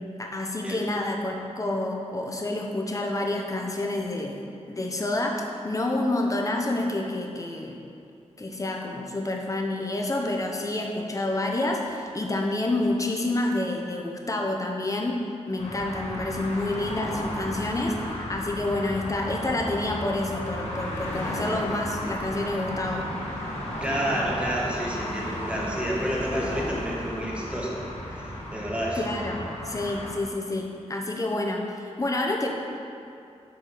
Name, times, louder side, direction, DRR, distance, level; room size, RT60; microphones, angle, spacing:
voice 1, 0.0-4.4 4.7-7.8 8.4-23.1 29.0-32.5, left 2 dB, 30° left, 0 dB, 0.8 m, -28 dB
sound 1, 15.6-30.1, left 1 dB, 85° left, 1.6 m, -34 dB
voice 2, 23.8-27.8 28.1-29.0, equal, 10° right, -4 dB, 1.3 m, -29 dB
7.1 x 4.7 x 5.0 m, 2.6 s
wide cardioid pair, 95°, 12 cm